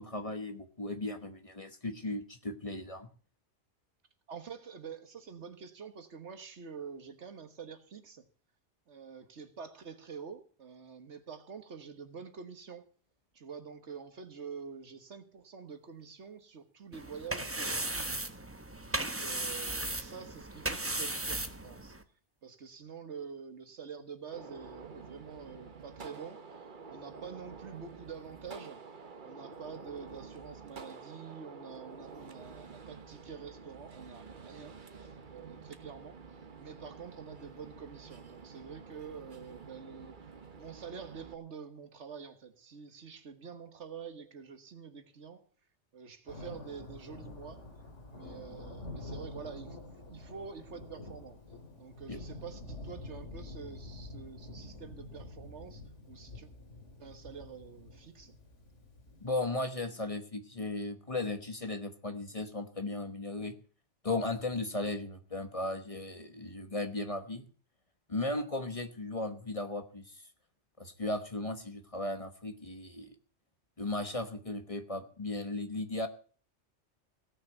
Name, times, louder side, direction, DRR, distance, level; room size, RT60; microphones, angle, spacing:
voice 1, 0.0-3.1 52.1-52.2 59.2-63.6 64.0-67.4 68.1-70.2 70.8-73.1 73.8-76.1, left 2 dB, 30° left, 1.2 m, -36 dB
voice 2, 4.3-8.3 8.9-12.9 13.3-18.2 18.8-22.0 22.4-26.4 26.9-28.8 29.2-40.2 40.6-45.4 45.9-47.6 48.1-51.4 51.8-56.5 57.0-58.3, right 6 dB, 70° right, 1.6 m, -47 dB
sound 1, 16.9-22.0, right 2 dB, 15° right, 0.9 m, -36 dB
Gunshot gunfire, 24.3-41.3, right 5 dB, 45° right, 1.2 m, -49 dB
Thunder, 46.3-59.3, left 2 dB, 85° left, 2.6 m, -47 dB
17.0 x 6.3 x 8.0 m
omnidirectional pair, 1.2 m